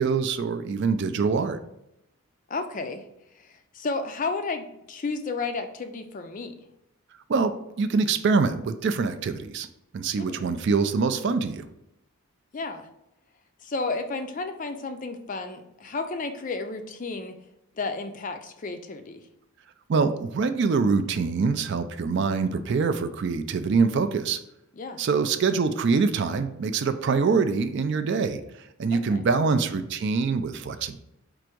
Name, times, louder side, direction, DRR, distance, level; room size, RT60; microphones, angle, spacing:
voice 1, 0.0-1.6 7.3-9.7 9.9-11.7 19.9-24.4 25.0-28.4 28.8-31.0, right 4 dB, 50° right, 10 dB, 0.3 m, -24 dB
voice 2, 2.5-3.0 3.4-6.5 10.2-10.4 12.5-12.9 13.6-17.3 17.8-19.2 24.8-25.0 28.9-29.2, left 3 dB, 35° left, 7 dB, 0.4 m, -32 dB
4.6 x 2.5 x 4.5 m, 0.83 s
head